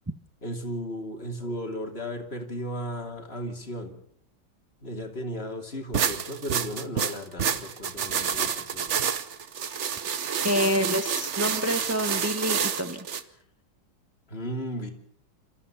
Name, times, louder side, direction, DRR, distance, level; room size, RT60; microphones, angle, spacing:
voice 1, 0.4-4.0 4.8-8.9 14.3-14.9, equal, 30° left, 3 dB, 2.9 m, -35 dB
sound 1, 5.9-13.2, right 7 dB, 50° right, 1.0 m, -28 dB
voice 2, 10.4-13.1, equal, 25° right, 8 dB, 0.3 m, -27 dB
28.5 x 14.0 x 7.2 m, 0.69 s
omnidirectional pair, 2.2 m